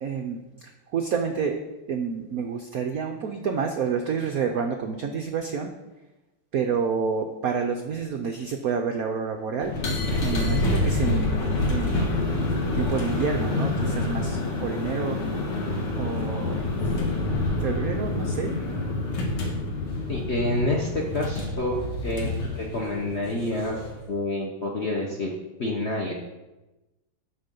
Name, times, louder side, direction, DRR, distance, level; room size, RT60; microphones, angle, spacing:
voice 1, 0.0-1.6 1.9-5.7 6.5-9.7 10.2-12.3 12.7-15.2 16.0-16.6 17.6-18.6 22.2-22.3, right 6 dB, 90° right, 4 dB, 0.8 m, -29 dB
sound 1, 9.6-24.0, left 2 dB, 85° left, 2.5 m, -27 dB
voice 2, 20.1-23.8 24.1-25.3 25.6-26.1, left 1 dB, 50° left, -1 dB, 0.8 m, -28 dB
12.0 x 4.3 x 5.3 m, 1.1 s
omnidirectional pair, 2.4 m